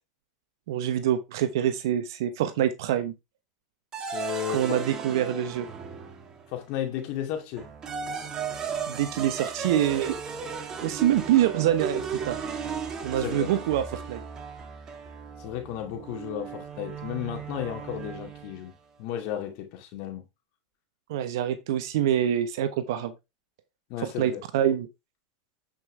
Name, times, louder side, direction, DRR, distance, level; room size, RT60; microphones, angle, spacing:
voice 1, 0.7-3.1 4.5-5.7 8.9-10.2 10.8-12.4 13.0-14.2 21.1-23.1 24.2-24.9, right 11 dB, 70° right, 1.0 m, -25 dB
sound 1, 3.9-6.5 7.6-18.7, right 6 dB, 30° right, 1.8 m, -36 dB
voice 2, 4.0-4.8 5.3-5.5 6.5-7.7 13.2-13.5 15.4-18.7 19.0-20.2 23.9-24.4, left 11 dB, 55° left, 2.2 m, -34 dB
9.6 x 5.5 x 3.3 m
hypercardioid pair, 105°, 2 cm